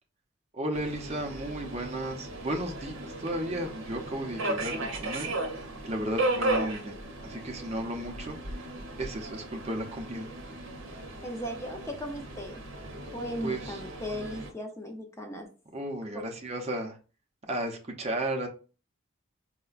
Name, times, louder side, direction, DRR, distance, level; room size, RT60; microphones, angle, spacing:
voice 1, 0.5-5.3 5.8-8.7 9.0-10.3 13.4-13.8 15.7-17.0 17.5-18.5, right 1 dB, 30° right, 2 dB, 0.6 m, -34 dB
Subway metro underground, 0.7-14.5, right 2 dB, 80° right, 0.7 m, -36 dB
voice 2, 11.2-12.6 13.1-15.5, equal, 15° left, 3 dB, 0.5 m, -37 dB
4.2 x 2.1 x 2.3 m, 0.35 s
head